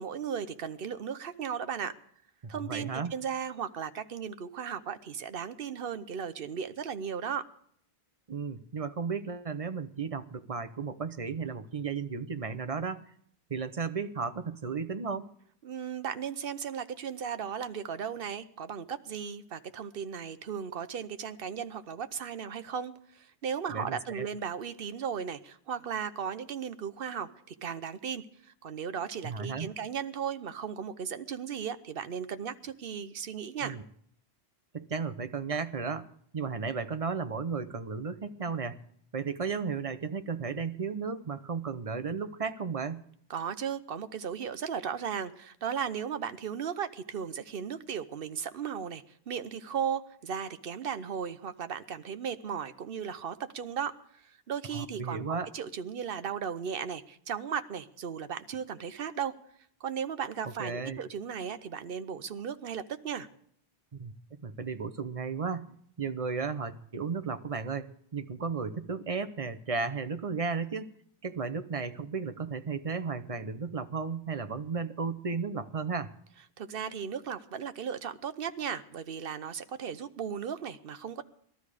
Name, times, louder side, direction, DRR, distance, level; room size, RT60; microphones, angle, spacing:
voice 1, 0.0-1.9 2.5-7.5 15.6-33.8 43.3-59.3 59.8-63.3 76.6-81.2, right 7 dB, 60° right, 11 dB, 1.0 m, -36 dB
voice 2, 2.6-3.1 8.3-13.1 13.5-15.3 23.7-24.3 29.2-29.7 33.6-33.8 34.7-36.1 36.3-38.8 39.1-43.0 54.7-55.5 60.6-61.0 64.0-64.1 64.4-70.9 71.2-76.1, right 5 dB, 35° right, 10 dB, 0.8 m, -34 dB
19.5 x 12.5 x 4.9 m, 0.65 s
omnidirectional pair, 1.1 m